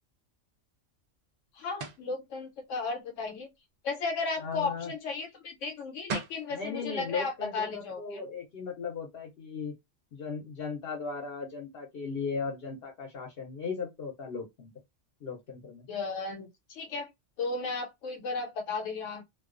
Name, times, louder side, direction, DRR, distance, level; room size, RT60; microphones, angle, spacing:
voice 1, 1.5-3.5 3.8-8.2 15.9-17.1 17.4-19.2, left 4 dB, 80° left, 1.0 m, -34 dB
sound 1, 1.8-2.1 5.8-5.9 6.1-6.5, right 4 dB, 70° right, 0.4 m, -35 dB
voice 2, 4.4-4.9 6.5-9.7 10.1-14.7 15.2-15.9, left 5 dB, 60° left, 0.8 m, -37 dB
2.3 x 2.3 x 2.4 m
omnidirectional pair, 1.3 m